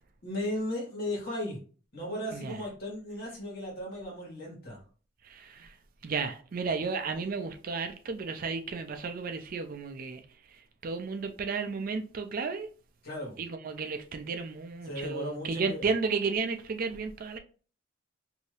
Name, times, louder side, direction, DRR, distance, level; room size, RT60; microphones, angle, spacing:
voice 1, 0.2-1.6 1.9-4.8 13.0-13.4 14.8-15.9, left 1 dB, 50° left, 1.5 m, -36 dB
voice 2, 5.2-5.7 6.0-10.2 10.8-12.7 13.4-17.4, right 4 dB, 45° right, 0.4 m, -33 dB
2.7 x 2.6 x 3.2 m
head